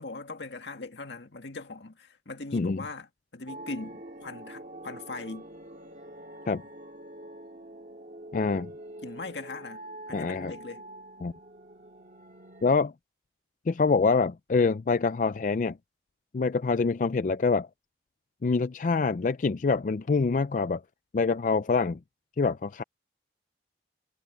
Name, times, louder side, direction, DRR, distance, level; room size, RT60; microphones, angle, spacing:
voice 1, 0.0-3.1 3.3-5.5 9.0-9.8 10.1-10.8, left 3 dB, 85° left, 1.9 m, -40 dB
sound 1, 3.5-12.8, right 1 dB, 45° right, 1.9 m, -45 dB
voice 2, 8.3-8.7 10.1-10.5 11.2-11.3 12.6-12.9 13.7-15.8 16.3-17.7 18.4-20.8 21.1-22.0 22.4-22.8, left 4 dB, 45° left, 0.4 m, -25 dB
head